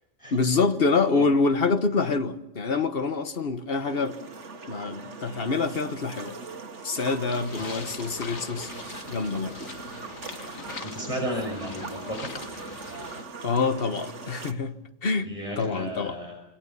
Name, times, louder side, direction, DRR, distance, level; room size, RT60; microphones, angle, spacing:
voice 1, 0.3-4.2 4.7-6.4 6.8-8.7 9.1-9.6 13.4-14.7 15.0-15.3 15.6-16.2, left 4 dB, 45° left, 1.6 m, -26 dB
sound 1, 3.8-14.5, right 4 dB, 60° right, 2.0 m, -41 dB
sound 2, 7.3-13.2, left 4 dB, 80° left, 2.1 m, -42 dB
voice 2, 7.6-7.9 10.8-12.3 15.2-16.4, equal, 25° left, 5.4 m, -34 dB
27.5 x 22.5 x 7.0 m
omnidirectional pair, 1.4 m